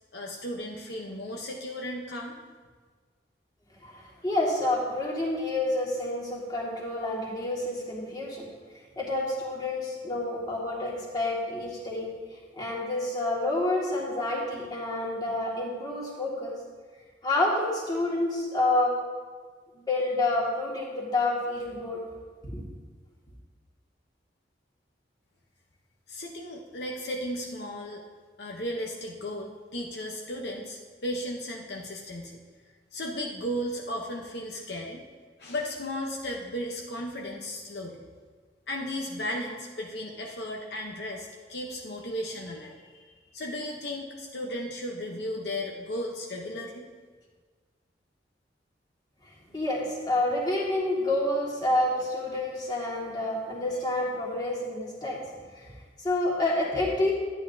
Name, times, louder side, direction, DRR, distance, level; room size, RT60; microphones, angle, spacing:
voice 1, 0.1-2.4 26.1-28.0 28.4-32.4 32.9-35.0 35.4-38.0 38.7-46.8, left 1 dB, 65° left, 0 dB, 0.9 m, -35 dB
voice 2, 3.8-8.5 9.0-12.1 12.6-16.6 17.2-18.9 19.8-22.0 22.5-22.6 49.5-55.2 55.6-55.7 56.0-57.1, left 2 dB, 25° left, -4 dB, 1.9 m, -28 dB
12.0 x 9.6 x 2.7 m, 1.5 s
head